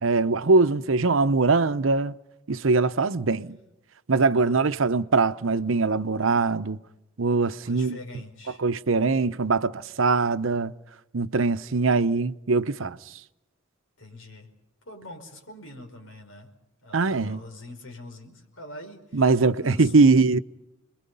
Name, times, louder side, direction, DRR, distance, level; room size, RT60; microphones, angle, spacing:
voice 1, 0.0-2.2 2.5-3.6 4.1-6.8 7.2-8.0 8.6-10.7 11.1-13.0 16.9-17.4 19.1-20.4, right 3 dB, 80° right, 0.8 m, -22 dB
voice 2, 4.3-4.7 7.5-8.6 14.0-14.5 14.9-16.5 16.8-20.3, left 1 dB, 85° left, 5.1 m, -44 dB
29.0 x 22.0 x 5.5 m
head